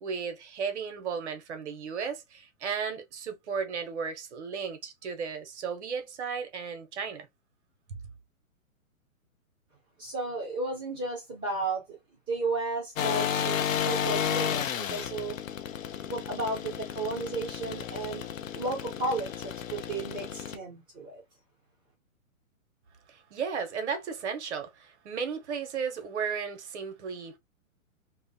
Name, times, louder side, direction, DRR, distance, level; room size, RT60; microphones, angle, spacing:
voice 1, 0.0-7.3 23.1-27.4, right 6 dB, 55° right, 0.7 m, -34 dB
voice 2, 10.0-12.0 12.3-15.4 16.1-18.3 18.5-21.2, right 3 dB, 10° right, 0.7 m, -33 dB
sound 1, 13.0-20.6, left 8 dB, 70° left, 0.5 m, -32 dB
2.8 x 2.1 x 2.6 m
hypercardioid pair, 145°, 42 cm